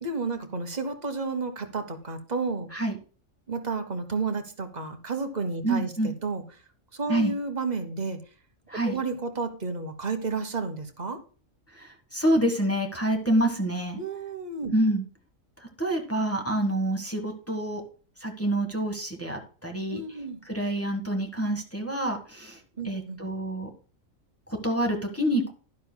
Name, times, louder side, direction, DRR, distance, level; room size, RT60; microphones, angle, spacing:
voice 1, 0.0-2.7 3.5-6.4 6.9-8.2 8.8-11.2 14.0-14.7 19.9-20.4 22.8-23.2, right 4 dB, 35° right, 7 dB, 1.1 m, -31 dB
voice 2, 5.6-6.1 7.1-7.3 8.7-9.0 11.7-14.0 14.7-15.0 15.6-17.8 18.2-20.0 20.4-22.6 22.8-23.7 24.6-25.5, right 1 dB, 10° left, 2 dB, 1.3 m, -27 dB
12.0 x 11.0 x 2.2 m, 0.37 s
omnidirectional pair, 1.4 m